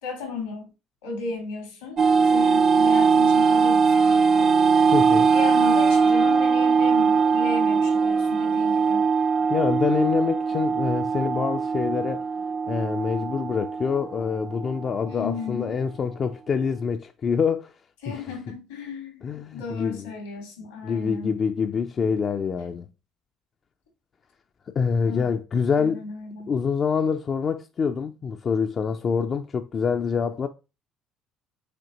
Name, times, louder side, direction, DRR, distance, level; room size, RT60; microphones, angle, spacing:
voice 1, 0.0-0.7 1.0-4.5 5.3-9.1 15.1-15.8 18.0-21.4 25.1-25.3 25.8-26.5, left 4 dB, 85° left, 2.0 m, -35 dB
sound 1, 2.0-15.0, right 5 dB, 50° right, 0.5 m, -21 dB
voice 2, 4.9-5.3 9.5-12.2 12.7-17.7 18.1-18.2 19.2-20.1 20.8-22.9 24.7-26.0 26.5-30.5, left 6 dB, 45° left, 0.4 m, -26 dB
5.1 x 3.6 x 2.9 m
hypercardioid pair, 60°, 0 cm